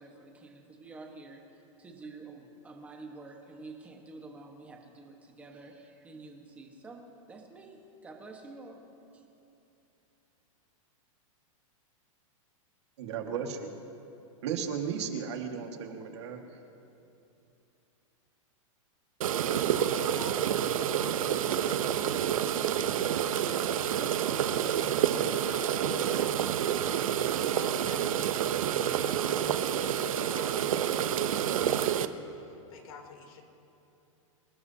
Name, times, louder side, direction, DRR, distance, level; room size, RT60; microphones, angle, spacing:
voice 1, 0.0-8.8 9.1-9.2, right 3 dB, 10° right, 2 dB, 1.3 m, -48 dB
voice 2, 13.0-13.7 14.4-16.5, right 7 dB, 55° right, 3 dB, 1.8 m, -35 dB
sound 1, 19.2-32.1, right 10 dB, 75° right, 0.8 m, -28 dB
voice 3, 19.5-20.4 20.8-22.2 23.2-26.7 27.5-28.1 28.8-33.4, left 5 dB, 85° left, 2 dB, 3.1 m, -48 dB
26.5 x 18.0 x 2.8 m, 2.8 s
supercardioid pair, 175°, 17 cm